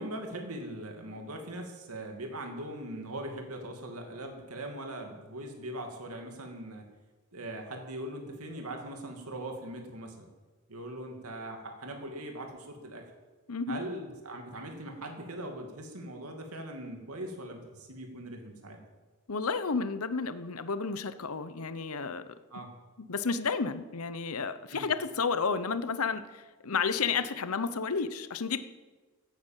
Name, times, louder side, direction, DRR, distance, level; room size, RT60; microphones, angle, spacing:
voice 1, 0.0-6.9 7.3-10.3 10.7-13.1 13.7-18.8 22.5-22.7 24.7-24.9, right 1 dB, 85° right, 4 dB, 2.5 m, -40 dB
voice 2, 13.5-13.8 19.3-22.2 23.0-28.6, left 5 dB, 75° left, 12 dB, 0.9 m, -31 dB
16.0 x 9.4 x 7.4 m, 1.3 s
head